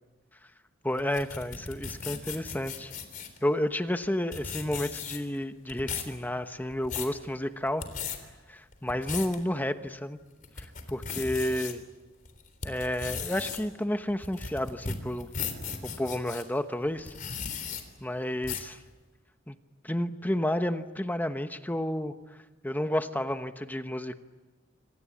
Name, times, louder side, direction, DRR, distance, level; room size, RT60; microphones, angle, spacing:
voice 1, 0.8-2.9 3.4-7.9 8.5-10.2 10.6-10.7 10.9-11.8 12.6-15.3 15.8-17.1 18.0-18.8 19.5-19.6 19.8-22.1 22.6-24.2, left 1 dB, 10° left, 9 dB, 1.1 m, -31 dB
sound 1, 1.0-3.4 4.0-4.1 4.3-5.4 5.7-6.1 6.6-7.1 7.7-8.2 8.7-9.4 9.9-10.0 10.4-11.7 12.2-16.4 17.0-17.8 18.4-18.7, left 6 dB, 45° left, 3.6 m, -36 dB
27.0 x 26.0 x 8.6 m, 1.1 s
head